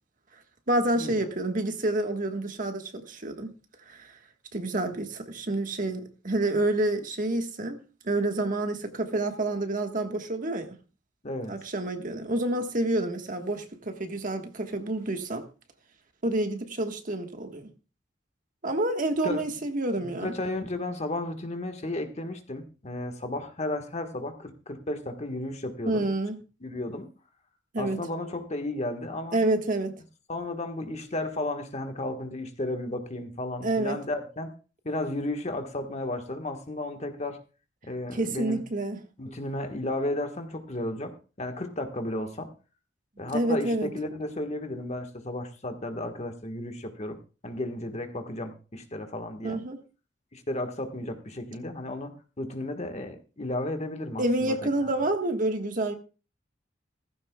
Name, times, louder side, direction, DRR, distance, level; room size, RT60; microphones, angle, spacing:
voice 1, 0.7-3.5 3.9-4.2 4.5-7.8 8.0-10.8 11.5-15.4 16.2-17.7 18.6-20.3 25.9-26.4 27.7-28.0 29.3-30.0 33.6-34.0 38.1-39.0 43.3-43.9 49.4-49.8 54.2-55.9, right 2 dB, 45° right, 1.4 m, -28 dB
voice 2, 11.2-11.6 19.2-19.6 20.0-26.1 26.6-27.1 27.8-29.4 30.3-34.5 34.8-37.4 37.8-38.6 39.2-42.5 43.2-47.2 47.4-49.6 50.3-52.1 52.4-54.5, left 1 dB, 35° left, 1.4 m, -33 dB
16.0 x 15.0 x 2.3 m
head